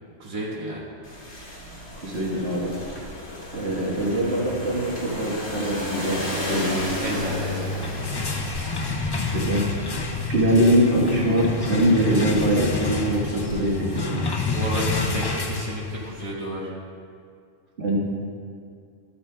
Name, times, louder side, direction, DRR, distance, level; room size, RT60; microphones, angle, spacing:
voice 1, 0.2-0.8 7.0-8.6 14.5-16.7, right 1 dB, 25° right, -6 dB, 1.6 m, -32 dB
sound 1, 1.0-13.6, left 1 dB, 60° left, 2.0 m, -34 dB
voice 2, 1.9-2.7 3.5-7.2 9.3-9.8 10.3-14.3 17.8-18.0, equal, 60° right, -5 dB, 1.6 m, -23 dB
sound 2, 7.7-16.2, left 3 dB, 40° left, 0.3 m, -28 dB
13.5 x 8.6 x 2.2 m, 2.3 s
omnidirectional pair, 1.3 m